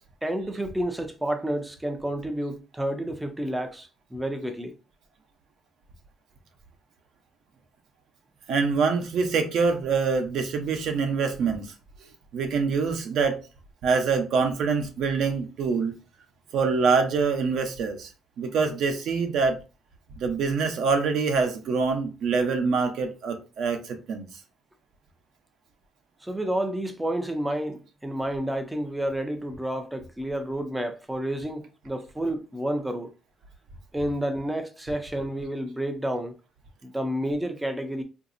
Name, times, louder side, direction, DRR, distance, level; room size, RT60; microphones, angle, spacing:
voice 1, 0.2-4.7 26.2-33.1 33.9-36.3 36.8-38.0, right 1 dB, 5° right, 0.4 m, -30 dB
voice 2, 8.5-11.7 12.3-13.4 13.8-15.9 16.5-18.1 18.4-19.6 20.2-24.3, right 5 dB, 65° right, 0.7 m, -25 dB
3.9 x 2.6 x 2.5 m
cardioid pair, 155°, 0 cm